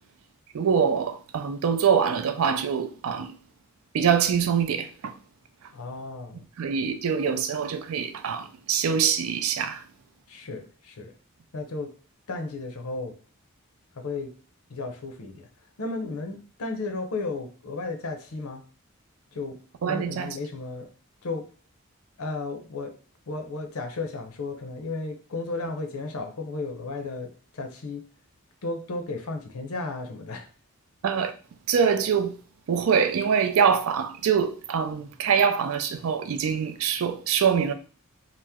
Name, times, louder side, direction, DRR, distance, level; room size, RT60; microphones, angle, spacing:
voice 1, 0.5-3.3 3.9-5.2 6.6-9.8 19.8-20.4 31.0-31.3 31.7-32.4 32.7-37.7, right 7 dB, 75° right, 0.4 m, -24 dB
voice 2, 5.7-6.4 10.3-11.1 11.5-11.9 12.3-13.1 13.9-14.3 14.7-15.5 15.8-18.6 19.3-19.6 19.9-20.9 21.2-21.5 22.2-22.9 23.3-28.0 28.6-30.5, left 3 dB, 85° left, 0.6 m, -34 dB
2.9 x 2.0 x 3.4 m
head